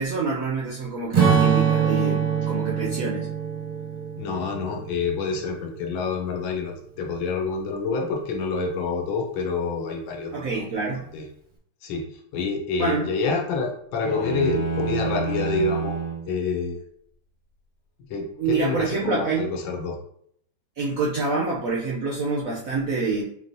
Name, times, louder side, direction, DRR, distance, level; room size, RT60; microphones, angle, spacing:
voice 1, 0.0-3.3 10.3-11.1 12.8-13.1 18.4-19.5 20.8-23.2, right 3 dB, 75° right, -4 dB, 0.7 m, -26 dB
Strum, 1.1-5.8, right 7 dB, 35° right, 0.6 m, -24 dB
voice 2, 4.1-10.6 11.0-11.3 11.8-16.0 16.3-16.8 18.1-20.0, left 4 dB, 80° left, 1 dB, 1.5 m, -27 dB
sound 1, 14.0-16.3, right 4 dB, 65° left, 1.4 m, -28 dB
4.6 x 3.0 x 2.6 m, 0.68 s
omnidirectional pair, 2.1 m